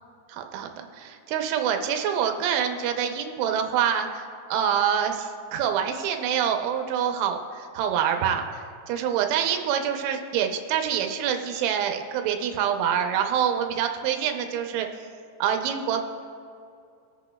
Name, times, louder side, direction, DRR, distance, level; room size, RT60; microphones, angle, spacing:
voice 1, 0.3-14.9 15.4-16.0, right 8 dB, 85° right, 5 dB, 3.1 m, -26 dB
23.5 x 8.3 x 2.3 m, 2.4 s
omnidirectional pair, 5.4 m